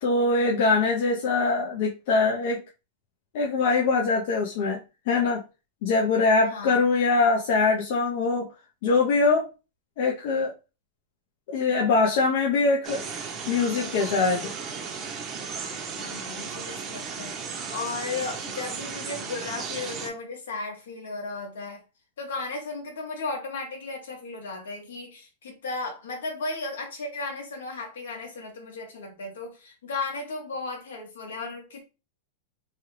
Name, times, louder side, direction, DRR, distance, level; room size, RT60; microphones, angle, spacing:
voice 1, 0.0-2.6 3.3-4.8 5.1-5.4 5.8-8.5 8.8-9.5 10.0-10.5 11.5-13.0 13.5-14.5, left 3 dB, 60° left, 0.6 m, -23 dB
voice 2, 6.5-6.9 15.9-21.8 22.2-31.8, left 3 dB, 85° left, 1.3 m, -35 dB
sound 1, 12.8-20.1, right 5 dB, 30° right, 0.7 m, -35 dB
3.1 x 2.3 x 3.2 m
hypercardioid pair, 125°, 0 cm